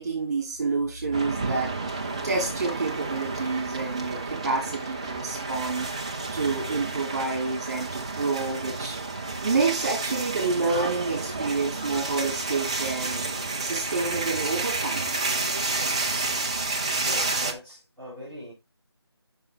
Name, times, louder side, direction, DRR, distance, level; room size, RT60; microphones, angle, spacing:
voice 1, 0.0-1.8 2.2-5.9 6.3-9.0 9.4-13.2 13.6-15.1, right 4 dB, 40° right, 2.8 m, -28 dB
sound 1, 1.1-17.5, right 3 dB, 15° right, 0.5 m, -30 dB
voice 2, 17.0-18.5, equal, 10° left, 3.2 m, -40 dB
8.7 x 5.8 x 3.4 m
figure-of-eight pair, 165°, 14 cm